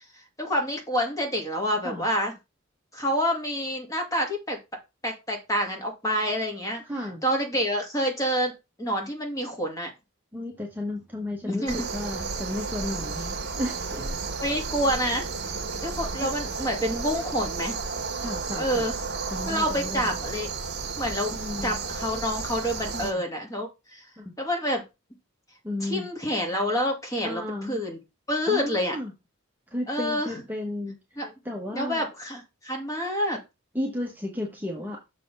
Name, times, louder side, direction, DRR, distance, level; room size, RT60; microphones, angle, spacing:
voice 1, 0.1-2.3 2.9-4.6 5.0-6.8 7.2-8.5 8.8-9.9 11.4-11.8 14.4-15.3 15.8-17.8 18.6-19.0 19.4-20.5 21.0-21.4 21.6-24.0 24.4-24.8 25.8-28.0 28.3-29.0 29.9-30.3 31.2-31.3 31.7-33.4, equal, 15° left, 1 dB, 2.2 m, -28 dB
voice 2, 6.9-7.2 10.3-14.2 18.2-18.8 19.3-20.2 21.3-21.8 22.9-23.2 24.2-24.3 25.6-26.1 27.2-27.8 28.5-29.1 29.7-31.0 31.4-32.0 33.7-35.0, left 1 dB, 10° right, -1 dB, 1.2 m, -33 dB
sound 1, 11.7-23.1, right 4 dB, 55° right, 1.5 m, -33 dB
6.6 x 4.1 x 5.3 m, 0.24 s
head